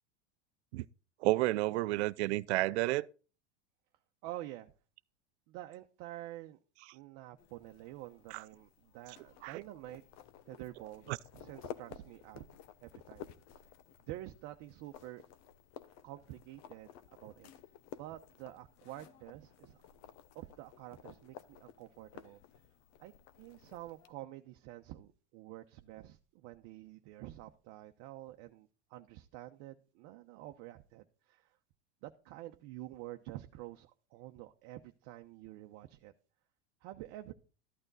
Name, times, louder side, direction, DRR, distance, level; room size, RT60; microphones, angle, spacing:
voice 1, 1.2-3.1 8.3-8.4 9.4-9.6, right 18 dB, 70° right, 0.6 m, -31 dB
voice 2, 4.2-4.7 5.5-6.6 6.9-10.0 10.5-12.4 12.8-13.3 14.1-15.2 16.0-17.5 17.9-19.8 20.3-22.4 23.0-31.6 32.0-36.1 36.8-37.3, right 15 dB, 55° right, 0.9 m, -48 dB
sound 1, 7.4-24.1, left 10 dB, 50° left, 1.1 m, -54 dB
13.5 x 8.9 x 4.1 m
hypercardioid pair, 110°, 34 cm